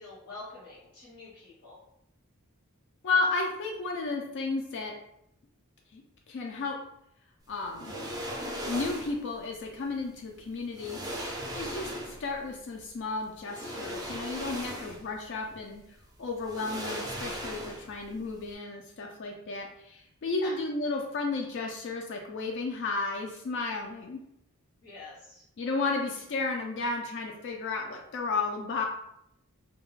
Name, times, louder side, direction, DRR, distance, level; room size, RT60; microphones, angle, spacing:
voice 1, 0.0-1.8 14.7-14.9 20.3-20.5 24.8-25.4, left 3 dB, 75° left, -6 dB, 0.9 m, -46 dB
voice 2, 3.0-4.9 5.9-6.0 6.3-6.8 7.5-8.0 8.7-11.0 11.5-15.8 16.2-24.2 25.6-28.8, left 3 dB, 55° left, 1 dB, 0.3 m, -33 dB
sound 1, 7.7-9.2 10.3-10.4 10.7-12.3 13.4-15.2 15.5-15.6 16.4-18.0 18.3-18.5, equal, 15° right, 0.4 m, -37 dB
2.3 x 2.1 x 3.0 m, 0.75 s
head